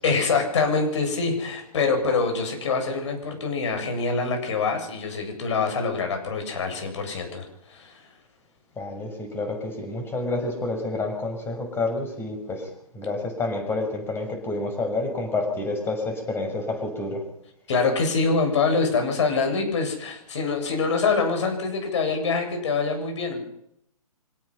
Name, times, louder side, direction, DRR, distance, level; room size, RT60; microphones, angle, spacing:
voice 1, 0.0-8.0 17.7-23.4, left 4 dB, 50° left, 5 dB, 7.4 m, -25 dB
voice 2, 8.8-17.2, left 2 dB, 10° left, 5 dB, 6.3 m, -29 dB
26.0 x 17.5 x 5.8 m, 0.75 s
figure-of-eight pair, 125°, 19 cm